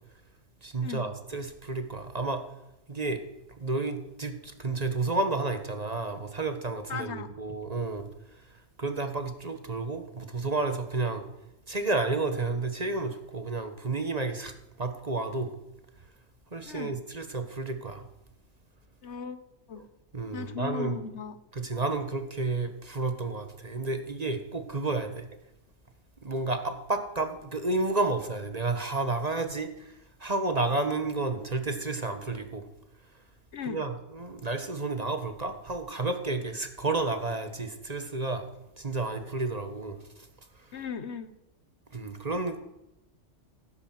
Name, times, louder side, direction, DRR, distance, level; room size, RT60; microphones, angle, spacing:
voice 1, 0.6-2.4 2.9-3.2 3.6-8.0 8.8-11.2 11.7-15.5 16.5-18.0 20.1-21.0 21.5-25.3 26.2-29.7 30.2-32.6 33.7-38.5 38.8-40.0 41.9-42.6, right 3 dB, 35° right, 8 dB, 1.5 m, -31 dB
voice 2, 6.9-7.3 16.6-16.9 19.0-19.4 19.7-19.8 20.3-21.4 33.5-33.8 40.7-41.3, left 6 dB, 65° left, 12 dB, 1.2 m, -37 dB
16.5 x 10.5 x 7.8 m, 0.92 s
omnidirectional pair, 1.2 m